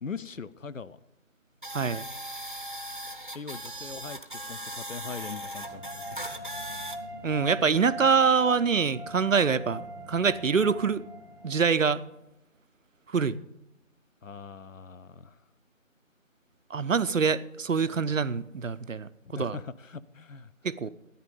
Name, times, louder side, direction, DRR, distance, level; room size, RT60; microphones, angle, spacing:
voice 1, 0.0-1.0 3.3-6.4 14.2-15.4 19.2-20.5, left 5 dB, 70° left, 16 dB, 0.7 m, -41 dB
sound 1, 1.6-7.0, right 1 dB, 40° right, 0.8 m, -38 dB
voice 2, 1.7-2.1 7.2-11.0 11.4-12.0 13.1-13.4 16.7-19.1 19.4-19.6 20.6-20.9, right 5 dB, 70° right, 14 dB, 0.7 m, -25 dB
sound 2, 5.6-12.1, equal, 35° left, 4.5 m, -42 dB
13.0 x 9.8 x 5.3 m, 0.87 s
figure-of-eight pair, 175°, 41 cm